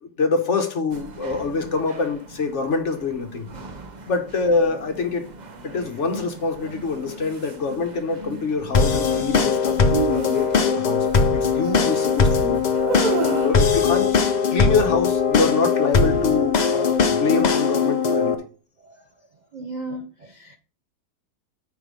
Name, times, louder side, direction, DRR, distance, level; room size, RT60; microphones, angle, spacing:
voice 1, 0.0-3.5 4.1-5.3 5.6-9.8 10.1-12.6 13.4-14.1 14.5-18.4, left 4 dB, 50° left, 1.3 m, -25 dB
sound 1, 0.9-13.6, right 4 dB, 40° right, 0.6 m, -36 dB
sound 2, 8.7-18.3, left 5 dB, 65° left, 0.4 m, -20 dB
voice 2, 9.9-10.4 13.7-13.8 18.8-18.9 19.5-20.6, right 5 dB, 80° right, 0.4 m, -30 dB
9.2 x 3.7 x 5.0 m
omnidirectional pair, 1.8 m